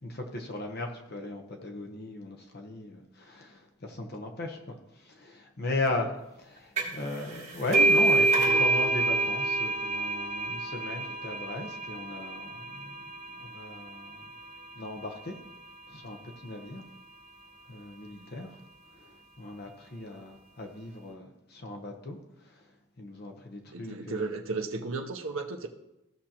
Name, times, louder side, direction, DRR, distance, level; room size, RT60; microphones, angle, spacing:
voice 1, 0.0-6.1 6.4-14.3 14.8-15.4 15.9-16.8 17.7-18.5 18.9-22.6 23.0-24.3, left 2 dB, 45° left, 3 dB, 1.0 m, -37 dB
sound 1, 6.8-7.1 7.3-14.7, right 3 dB, 35° right, 2.5 m, -27 dB
voice 2, 23.7-25.7, right 3 dB, 70° right, 3 dB, 0.8 m, -34 dB
15.5 x 6.2 x 2.9 m, 0.92 s
head